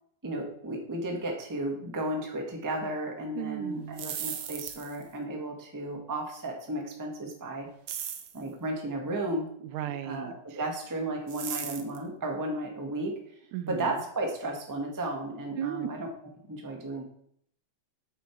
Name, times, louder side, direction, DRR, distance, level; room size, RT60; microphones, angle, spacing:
voice 1, 0.2-7.7 8.3-9.5 10.0-13.4 13.7-16.1 16.5-17.0, right 1 dB, 15° right, 1 dB, 0.8 m, -34 dB
voice 2, 3.4-4.1 9.6-10.6 13.5-13.9 15.6-15.9, right 11 dB, 90° right, 11 dB, 2.2 m, -36 dB
sound 1, 3.8-5.1 7.9-8.4 11.3-12.0, right 9 dB, 65° right, 1.6 m, -36 dB
8.5 x 6.8 x 4.6 m, 0.68 s
omnidirectional pair, 3.4 m